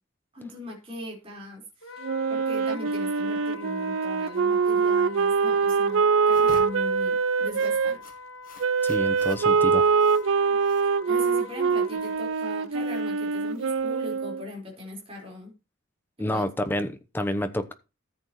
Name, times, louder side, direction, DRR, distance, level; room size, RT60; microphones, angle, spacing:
voice 1, 0.3-6.0 6.3-8.0 10.8-15.5 16.3-16.4, left 1 dB, 25° right, -2 dB, 4.6 m, -39 dB
Wind instrument woodwind instrument, 1.8-12.2, left 3 dB, 70° left, 2.1 m, -44 dB
Wind instrument woodwind instrument 2, 2.0-7.9 8.6-14.5, right 5 dB, 70° right, 0.4 m, -24 dB
sound 1, 6.2-14.2, left 3 dB, 40° left, 2.1 m, -50 dB
voice 2, 8.8-9.9 16.2-17.7, left 1 dB, 10° left, 10 dB, 0.9 m, -29 dB
13.5 x 8.1 x 3.1 m, 0.29 s
head